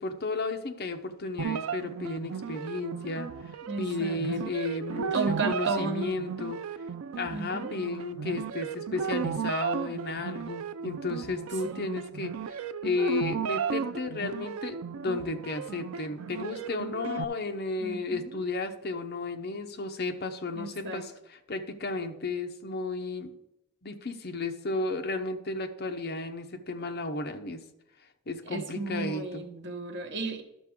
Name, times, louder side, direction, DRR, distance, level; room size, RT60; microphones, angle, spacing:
voice 1, 0.0-3.3 3.8-6.6 7.1-12.6 12.8-23.3 23.8-27.6 28.3-29.4, left 3 dB, 50° left, 6 dB, 0.8 m, -33 dB
sound 1, 1.4-17.2, right 7 dB, 75° right, 0.4 m, -35 dB
voice 2, 3.7-4.2 5.1-6.1 7.3-7.7 11.6-11.8 17.8-18.4 20.5-21.0 28.5-30.4, right 3 dB, 55° right, 4 dB, 1.2 m, -33 dB
11.5 x 6.8 x 3.6 m, 0.87 s
head